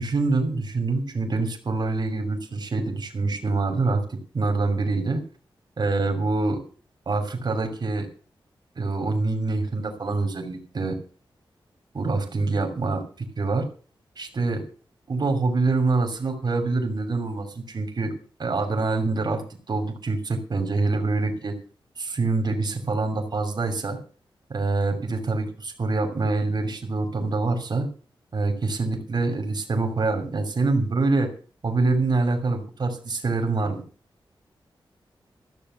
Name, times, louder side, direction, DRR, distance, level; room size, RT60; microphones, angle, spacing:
voice 1, 0.0-5.2 5.8-6.6 7.1-8.1 8.8-10.9 11.9-13.7 14.2-14.6 15.1-18.1 18.4-19.4 19.7-21.5 22.0-24.0 24.5-27.9 28.3-31.3 31.6-33.8, right 3 dB, 50° right, 4 dB, 2.9 m, -25 dB
14.0 x 7.0 x 8.0 m, 0.40 s
wide cardioid pair, 100°, 9 cm